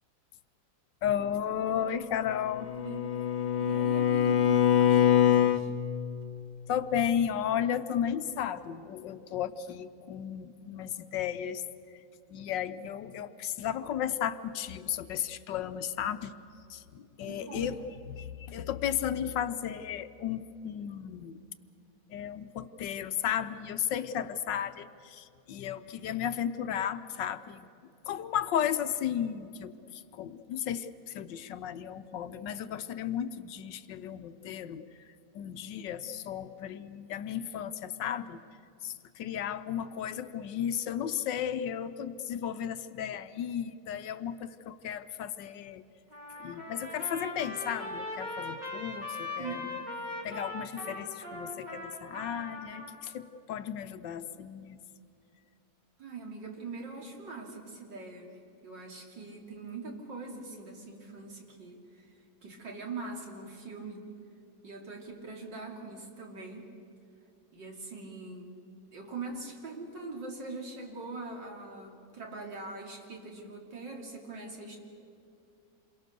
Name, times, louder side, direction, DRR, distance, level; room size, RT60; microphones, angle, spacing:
voice 1, 1.0-2.7 6.7-11.6 12.3-16.3 16.7-17.8 18.2-21.4 22.1-27.7 28.1-34.8 35.3-38.4 38.8-45.8 46.4-49.8 50.2-54.8, left 9 dB, 75° left, 11 dB, 1.4 m, -34 dB
Bowed string instrument, 2.3-5.7, left 10 dB, 45° left, 0.6 m, -24 dB
voice 2, 2.8-3.1 3.6-5.7 17.2-17.8 49.4-49.8 56.0-62.1 62.4-64.1 64.6-66.7 67.5-68.6 68.9-74.8, right 3 dB, 70° right, 0 dB, 3.6 m, -42 dB
Trumpet, 46.1-52.9, left 2 dB, 20° right, 4.3 m, -40 dB
28.0 x 22.5 x 6.8 m, 2.6 s
omnidirectional pair, 2.0 m